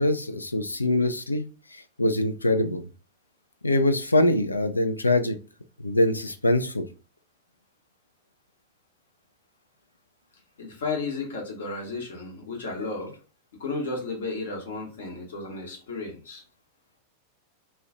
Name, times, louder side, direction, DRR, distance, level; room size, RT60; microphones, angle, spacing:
voice 1, 0.0-1.4 1.7-2.8 3.6-5.3 5.8-6.8, left 1 dB, 80° left, 8 dB, 0.3 m, -23 dB
voice 2, 10.6-13.1 13.6-16.4, left 3 dB, 60° left, 1 dB, 0.9 m, -33 dB
2.4 x 2.1 x 3.6 m, 0.35 s
figure-of-eight pair, 90°, 0 cm